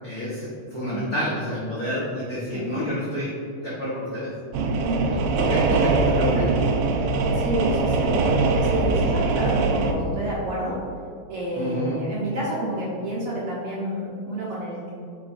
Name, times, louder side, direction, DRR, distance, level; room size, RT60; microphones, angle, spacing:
voice 1, 0.0-3.3 3.6-4.3 5.1-6.5 11.5-12.0, equal, 85° left, -9 dB, 0.8 m, -29 dB
sound 1, 4.5-9.9, right 3 dB, 85° right, 1.5 m, -22 dB
voice 2, 4.8-5.2 7.3-10.8 11.3-14.9, right 1 dB, 60° right, -7 dB, 1.6 m, -29 dB
8.5 x 4.8 x 2.6 m, 2.6 s
omnidirectional pair, 3.7 m